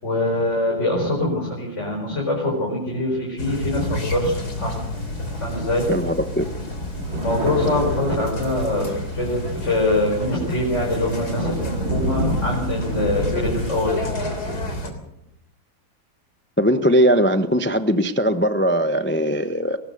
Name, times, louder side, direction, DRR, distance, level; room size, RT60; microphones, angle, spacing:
voice 1, 0.0-4.8 5.4-5.8 7.1-14.1, left 2 dB, 35° left, -2 dB, 5.2 m, -24 dB
sound 1, 3.4-14.9, left 1 dB, 55° left, 4.0 m, -30 dB
Thunder, 4.1-5.4 5.9-6.0 6.3-14.1, right 1 dB, 80° right, 3.6 m, -30 dB
voice 2, 5.9-6.5 16.6-19.8, equal, 15° left, 9 dB, 0.4 m, -19 dB
22.0 x 19.5 x 6.6 m, 0.83 s
omnidirectional pair, 2.0 m